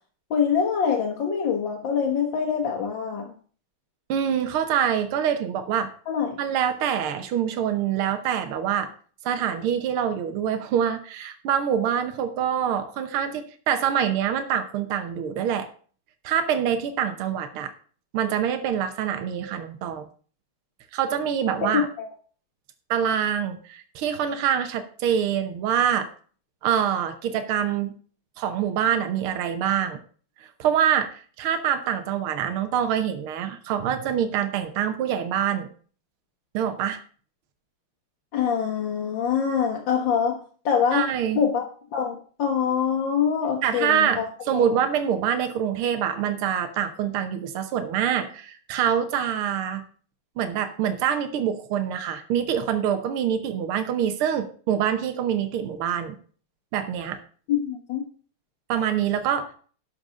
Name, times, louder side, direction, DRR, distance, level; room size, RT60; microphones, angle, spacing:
voice 1, 0.3-3.3 6.1-6.4 22.0-22.1 38.3-40.4 40.7-41.1 41.4-41.7 41.9-44.3 44.5-44.8 57.5-58.1, left 7 dB, 60° left, 1 dB, 1.9 m, -24 dB
voice 2, 4.1-5.9 6.4-8.9 9.3-15.7 16.2-17.7 18.1-20.1 20.9-21.9 22.9-26.1 26.6-27.9 28.4-30.0 30.4-35.7 36.5-37.0 40.9-41.4 43.6-44.2 44.5-49.8 50.4-56.2 56.7-57.2 58.7-59.5, right 9 dB, 75° right, 8 dB, 1.8 m, -25 dB
12.0 x 5.2 x 6.3 m, 0.43 s
omnidirectional pair, 2.4 m